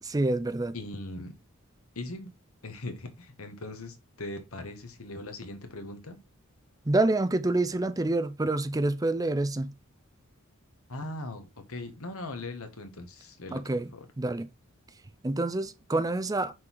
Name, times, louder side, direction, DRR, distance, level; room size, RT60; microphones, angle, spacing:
voice 1, 0.0-0.8 6.9-9.7 13.5-13.9 14.2-14.5 15.2-16.5, right 2 dB, 15° right, 0.5 m, -27 dB
voice 2, 0.7-1.3 1.9-2.3 2.6-6.2 10.9-13.6 13.9-14.1, left 2 dB, 75° left, 1.4 m, -40 dB
6.1 x 3.9 x 4.5 m
head